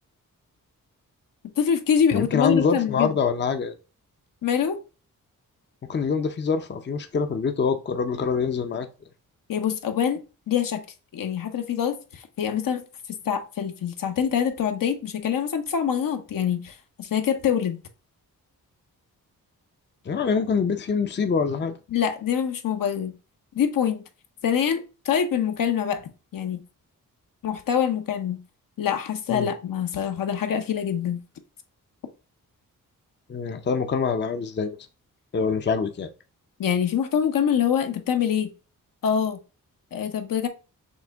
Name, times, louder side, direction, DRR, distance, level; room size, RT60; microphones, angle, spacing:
voice 1, 1.6-3.2 4.4-4.8 9.5-10.2 10.5-10.8 11.1-12.8 13.1-17.8 21.9-23.1 23.5-24.0 24.4-26.0 26.3-26.6 27.4-28.4 28.8-31.2 36.6-38.5 39.0-39.4 39.9-40.5, left 8 dB, 70° left, 0.8 m, -25 dB
voice 2, 2.1-3.7 5.9-8.9 20.1-21.8 29.3-29.5 33.3-34.8 35.3-36.1, left 5 dB, 30° left, 0.6 m, -25 dB
6.1 x 2.1 x 3.4 m
cardioid pair, 70°, 34 cm